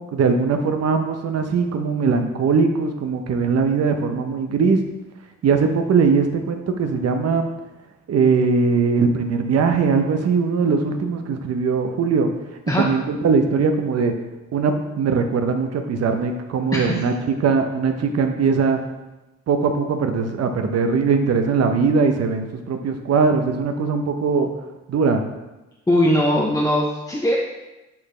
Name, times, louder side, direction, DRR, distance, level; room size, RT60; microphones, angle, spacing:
voice 1, 0.0-4.8 5.4-7.5 8.1-12.3 12.7-14.1 14.5-17.1 17.4-18.8 19.5-24.5 24.9-25.2, right 5 dB, 55° right, 6 dB, 0.8 m, -20 dB
voice 2, 16.7-17.0 25.9-27.4, left 1 dB, 10° left, -3 dB, 0.8 m, -20 dB
8.3 x 4.1 x 3.2 m, 1.0 s
cardioid pair, 90°, 30 cm